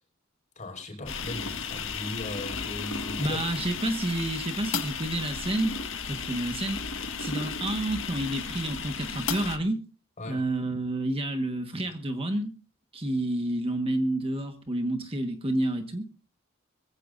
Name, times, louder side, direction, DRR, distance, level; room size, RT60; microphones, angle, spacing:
voice 1, 0.6-3.8 10.2-10.4, left 1 dB, 40° left, 3 dB, 5.7 m, -38 dB
sound 1, 1.1-9.6, left 5 dB, 65° left, 1.7 m, -34 dB
voice 2, 3.2-5.7 6.1-6.8 7.2-9.8 10.3-12.5 12.9-16.1, right 1 dB, 30° right, 6 dB, 1.5 m, -29 dB
22.0 x 16.0 x 2.6 m, 0.34 s
head